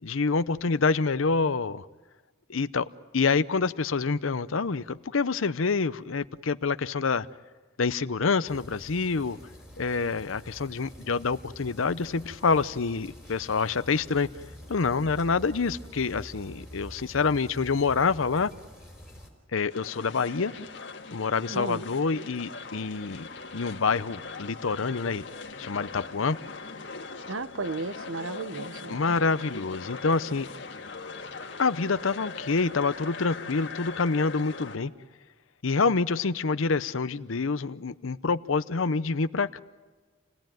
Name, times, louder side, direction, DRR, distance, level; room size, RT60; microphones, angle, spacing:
voice 1, 0.0-1.9 2.5-2.9 3.1-7.3 7.8-9.4 9.8-14.3 14.7-18.5 19.5-20.5 21.1-23.3 23.5-25.2 25.6-26.4 28.9-30.5 31.6-34.9 35.6-39.6, left 4 dB, 80° left, 13 dB, 0.7 m, -27 dB
sound 1, 8.5-19.3, equal, ahead, 4.2 m, -47 dB
sound 2, 19.7-34.8, left 4 dB, 60° left, 1.8 m, -41 dB
voice 2, 21.5-21.8 27.3-29.0, right 3 dB, 75° right, 13 dB, 0.9 m, -34 dB
29.0 x 18.0 x 9.2 m, 1.3 s
head